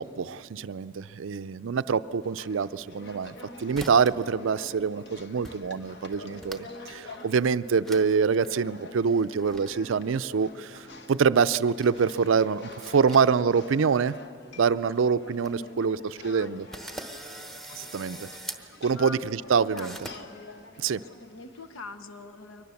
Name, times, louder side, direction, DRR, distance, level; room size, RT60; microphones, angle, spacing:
voice 1, 0.0-14.2 14.6-16.0 16.2-16.7 17.7-18.3 18.8-20.0 20.8-21.0, right 6 dB, 65° right, 15 dB, 0.4 m, -25 dB
sound 1, 2.2-21.9, left 2 dB, 55° left, 1.3 m, -48 dB
sound 2, 2.8-3.4 3.7-4.3 4.5-5.1 5.4-5.5 5.9-6.8 7.2-7.3 7.8-8.0 8.3-8.5 9.1-9.7 10.9-12.0 12.5-13.6 13.9-14.0 14.6-14.7 14.9-15.0 15.3-15.5 16.0-16.1 16.7-18.6 19.8-20.2, right 1 dB, ahead, 0.9 m, -42 dB
voice 2, 15.2-16.6 18.9-19.2 19.6-20.2 20.9-22.7, left 3 dB, 75° left, 9 dB, 0.9 m, -44 dB
23.0 x 20.0 x 7.1 m, 2.5 s
head